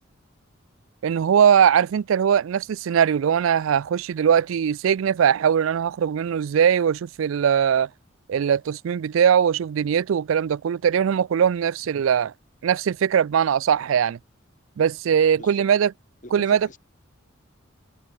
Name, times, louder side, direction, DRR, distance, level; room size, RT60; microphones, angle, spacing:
voice 1, 1.0-7.9 8.3-12.3 12.6-14.2 14.8-15.9 16.3-16.6, right 8 dB, 75° right, 0.3 m, -20 dB
voice 2, 15.3-15.7 16.2-16.8, left 1 dB, 35° left, 4.3 m, -43 dB
head